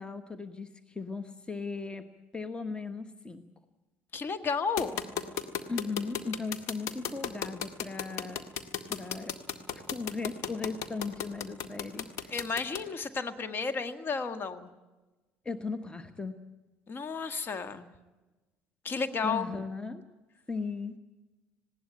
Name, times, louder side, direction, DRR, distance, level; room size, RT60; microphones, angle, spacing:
voice 1, 0.0-2.1 2.3-3.4 5.7-8.4 8.9-9.3 9.7-12.4 15.4-16.4 19.2-20.0 20.5-21.0, left 4 dB, 15° left, 11 dB, 1.2 m, -37 dB
voice 2, 4.1-5.0 12.3-14.7 16.9-17.9 18.8-19.5, left 5 dB, 40° left, 11 dB, 1.6 m, -32 dB
sound 1, 4.8-12.8, left 9 dB, 60° left, 1.8 m, -34 dB
19.5 x 17.5 x 8.8 m, 1.2 s
hypercardioid pair, 60°, 6 cm